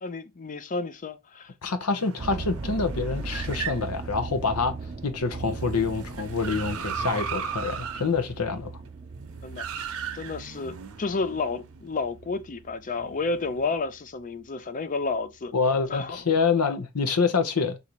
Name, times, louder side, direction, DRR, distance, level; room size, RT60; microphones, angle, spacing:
voice 1, 0.0-1.5 9.4-9.6 10.1-15.5 15.9-16.2, left 3 dB, 35° left, 0.5 m, -31 dB
voice 2, 1.6-4.8 5.0-8.7 15.5-17.8, left 4 dB, 85° left, 0.8 m, -26 dB
sound 1, 1.9-11.9 12.9-13.8, right 6 dB, 65° right, 0.8 m, -38 dB
sound 2, 2.2-14.5 15.0-15.4 16.0-16.1 16.4-16.5, right 3 dB, 30° right, 0.4 m, -39 dB
4.0 x 2.7 x 4.4 m
head